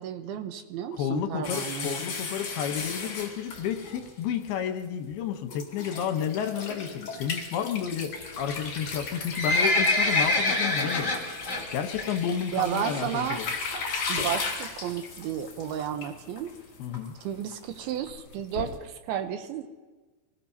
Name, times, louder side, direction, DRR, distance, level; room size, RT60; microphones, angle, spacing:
voice 1, 0.0-2.0 12.5-13.4 14.1-16.5 17.2-19.7, right 9 dB, 80° right, 8 dB, 2.6 m, -32 dB
voice 2, 0.9-11.1 11.7-13.5 16.8-17.1, left 8 dB, 80° left, 6 dB, 2.9 m, -31 dB
sound 1, 1.4-4.5 5.1-5.2 5.5-18.8, left 4 dB, 45° left, 3.1 m, -37 dB
Livestock farm animals working animals, 9.0-11.6 12.0-12.3 12.6-12.7 13.3-13.4 13.7-13.8 14.0-14.1 14.6-14.9 15.5-15.6 15.8-15.9 16.1-16.2 16.4-16.5 16.9-17.0 17.5-17.6 18.1-18.2, left 2 dB, 20° left, 2.7 m, -25 dB
25.5 x 19.0 x 2.8 m, 1.3 s
omnidirectional pair, 4.6 m